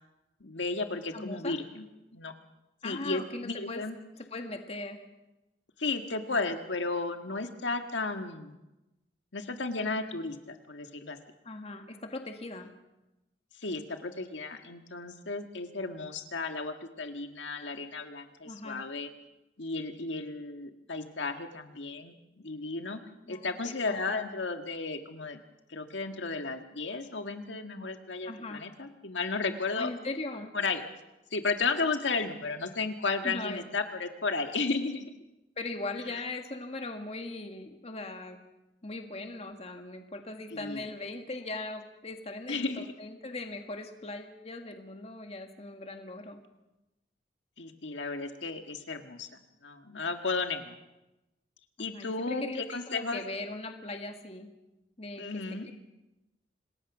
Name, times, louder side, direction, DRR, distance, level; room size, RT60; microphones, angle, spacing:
voice 1, 0.4-1.9 2.1-2.3 2.8-4.0 5.8-8.6 9.3-11.2 13.6-19.1 19.6-22.1 22.4-23.0 23.3-25.4 25.7-29.9 30.5-30.8 31.3-35.1 40.5-40.8 42.5-42.9 47.6-49.3 49.6-50.7 51.8-53.2 55.2-55.7, left 3 dB, 90° left, 6 dB, 1.7 m, -34 dB
voice 2, 1.1-1.6 2.8-3.8 4.2-5.0 11.5-12.7 18.4-18.8 23.3-24.2 28.2-28.6 29.7-30.5 33.2-33.6 35.6-38.4 38.8-46.4 51.8-54.5 55.0-55.7, left 2 dB, 35° left, 5 dB, 1.9 m, -39 dB
26.5 x 20.0 x 6.1 m, 1.0 s
head